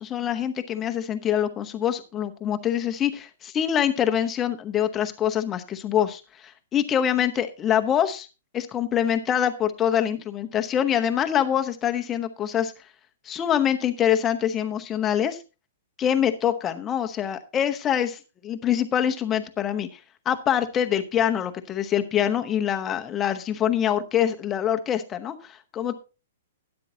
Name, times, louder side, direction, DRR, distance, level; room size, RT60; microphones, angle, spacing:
voice 1, 0.0-8.3 8.5-12.7 13.3-15.4 16.0-19.9 20.3-26.0, left 9 dB, 15° left, 7 dB, 0.8 m, -25 dB
12.0 x 10.5 x 2.8 m, 0.30 s
hypercardioid pair, 165°, 0 cm